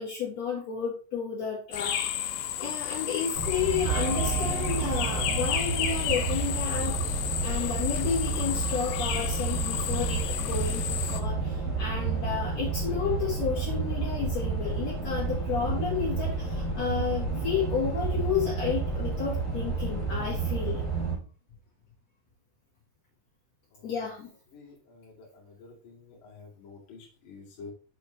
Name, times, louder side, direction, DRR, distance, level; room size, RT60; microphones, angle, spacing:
voice 1, 0.0-20.8 23.8-24.3, left 7 dB, 65° left, -4 dB, 1.7 m, -32 dB
sound 1, 1.7-11.2, left 11 dB, 80° left, 2.9 m, -32 dB
sound 2, 3.3-21.1, right 4 dB, 20° left, 0.5 m, -30 dB
sound 3, 3.9-8.2 8.5-8.6 9.2-9.3, right 14 dB, 85° right, 2.8 m, -38 dB
voice 2, 24.5-25.1 25.6-27.0 27.2-27.7, left 4 dB, 45° left, -3 dB, 1.7 m, -48 dB
6.9 x 6.3 x 3.1 m, 0.39 s
omnidirectional pair, 5.4 m